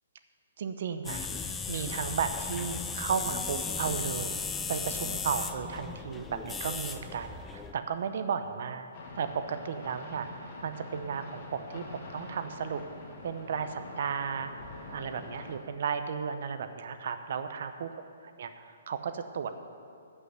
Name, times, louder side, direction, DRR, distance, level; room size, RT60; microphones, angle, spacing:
voice 1, 0.6-1.3 1.7-4.4 4.7-12.8 13.2-14.5 14.9-17.9 18.4-19.5, right 6 dB, 55° right, 9 dB, 0.7 m, -34 dB
sound 1, 1.0-7.7, left 5 dB, 10° left, 0.4 m, -36 dB
sound 2, 8.9-15.6, left 2 dB, 35° left, 1.7 m, -45 dB
12.0 x 5.6 x 8.1 m, 2.4 s
hypercardioid pair, 165°, 0 cm